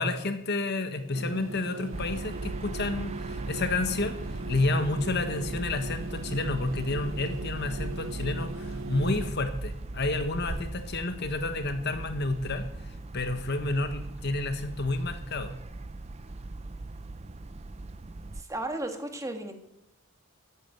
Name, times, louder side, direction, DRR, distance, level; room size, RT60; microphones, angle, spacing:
voice 1, 0.0-15.5, left 2 dB, 50° left, 8 dB, 1.4 m, -30 dB
sound 1, 1.1-9.3, right 2 dB, 65° right, 0.9 m, -39 dB
sound 2, 1.9-18.4, right 2 dB, 30° right, 0.6 m, -39 dB
voice 2, 18.3-19.6, right 1 dB, 15° right, 5 dB, 1.7 m, -34 dB
14.0 x 8.5 x 9.1 m, 0.88 s
head